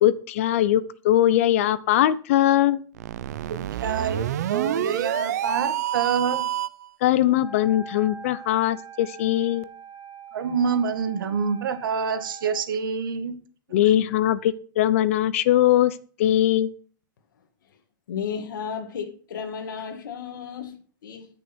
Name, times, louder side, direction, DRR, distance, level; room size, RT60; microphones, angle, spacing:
voice 1, 0.0-2.8 7.0-9.7 13.7-16.7, left 12 dB, 40° left, 0.6 m, -21 dB
sound 1, 2.9-6.9, right 12 dB, 55° right, 0.5 m, -28 dB
voice 2, 3.5-6.4 10.3-13.4, right 6 dB, 80° right, 1.8 m, -27 dB
Wind instrument woodwind instrument, 7.3-12.6, right 4 dB, 20° left, 3.6 m, -43 dB
voice 3, 18.1-21.3, left 7 dB, 70° left, 1.9 m, -33 dB
14.5 x 6.4 x 4.4 m
supercardioid pair, 180°, 11 cm